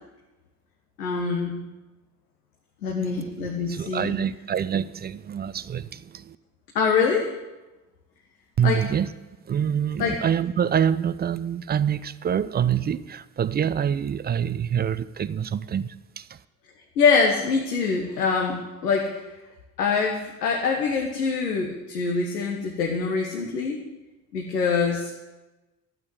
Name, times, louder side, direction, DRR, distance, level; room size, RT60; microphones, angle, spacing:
voice 1, 1.0-1.6 2.8-4.1 6.7-7.3 8.6-8.8 10.0-10.2 17.0-19.2 19.8-23.8 24.3-25.2, left 5 dB, 75° left, 1.4 m, -24 dB
voice 2, 3.0-6.4 8.6-9.1 9.4-16.4, right 8 dB, 20° right, 0.5 m, -26 dB
13.0 x 8.8 x 7.9 m
figure-of-eight pair, 50°, 48 cm